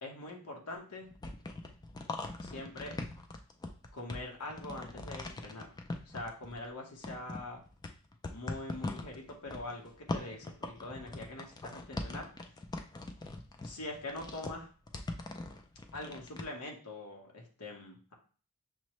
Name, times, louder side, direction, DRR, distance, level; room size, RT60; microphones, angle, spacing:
voice 1, 0.0-1.1 2.4-3.0 3.9-5.7 6.0-7.6 8.3-12.3 13.6-14.7 15.9-18.1, left 2 dB, 85° left, 1 dB, 1.0 m, -43 dB
sound 1, 1.0-6.7 7.0-16.4, left 2 dB, 20° left, 0.3 m, -41 dB
6.1 x 2.1 x 3.0 m, 0.40 s
head